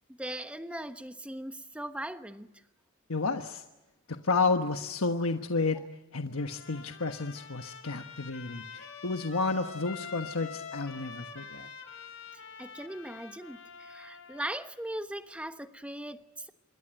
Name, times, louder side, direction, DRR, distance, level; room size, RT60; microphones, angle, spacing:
voice 1, 0.1-2.5 5.7-5.9 12.3-16.5, right 1 dB, 5° right, 1.1 m, -39 dB
voice 2, 3.1-3.6 4.1-5.8 6.1-11.7, left 3 dB, 85° left, 1.3 m, -31 dB
Trumpet, 6.4-14.6, left 5 dB, 65° left, 3.9 m, -46 dB
27.5 x 22.5 x 8.9 m
head